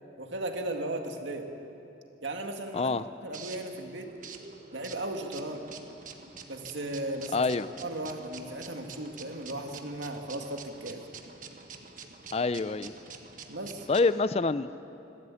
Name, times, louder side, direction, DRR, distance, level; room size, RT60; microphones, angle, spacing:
voice 1, 0.2-1.5 2.2-4.1 4.7-5.7 6.5-7.4 7.8-11.0 13.5-13.9, right 1 dB, 75° right, 4 dB, 2.0 m, -36 dB
voice 2, 2.7-3.0 7.3-7.7 12.3-12.9 13.9-14.7, left 3 dB, 35° left, 15 dB, 0.4 m, -26 dB
sound 1, 2.9-14.2, right 5 dB, 45° right, 1.4 m, -47 dB
25.5 x 13.0 x 8.5 m, 2.9 s
head